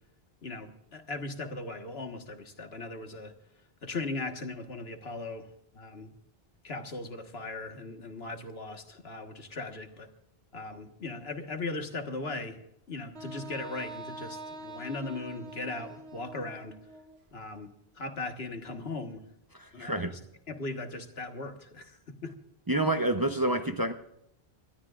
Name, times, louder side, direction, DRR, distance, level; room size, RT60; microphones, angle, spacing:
voice 1, 0.4-3.3 3.8-5.5 5.7-6.1 6.6-10.1 10.5-12.6 12.9-16.8 17.3-17.7 17.9-19.2 19.7-20.2 20.5-22.4, left 3 dB, 80° left, 5 dB, 1.8 m, -38 dB
Wind instrument woodwind instrument, 13.2-17.2, right 1 dB, 90° right, 1.4 m, -44 dB
voice 2, 19.5-20.1 22.7-23.9, right 1 dB, 25° right, 6 dB, 0.7 m, -28 dB
28.5 x 13.0 x 2.5 m, 0.81 s
omnidirectional pair, 1.0 m